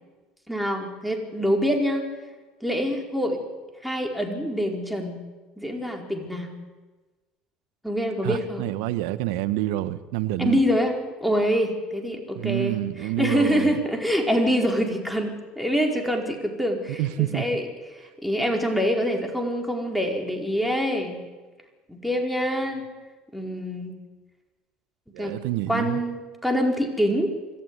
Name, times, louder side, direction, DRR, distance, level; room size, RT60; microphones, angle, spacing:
voice 1, 0.5-2.1 2.6-3.4 3.8-5.2 5.6-6.5 7.8-8.7 10.4-12.8 13.2-17.6 18.2-21.2 21.9-22.8 23.3-23.9 25.2-25.3 25.7-27.3, equal, ahead, 2 dB, 4.6 m, -25 dB
voice 2, 8.2-10.6 12.3-13.8 17.0-17.5 25.1-26.0, right 15 dB, 75° right, 13 dB, 1.2 m, -27 dB
25.5 x 14.0 x 9.6 m, 1.3 s
supercardioid pair, 85°, 3 cm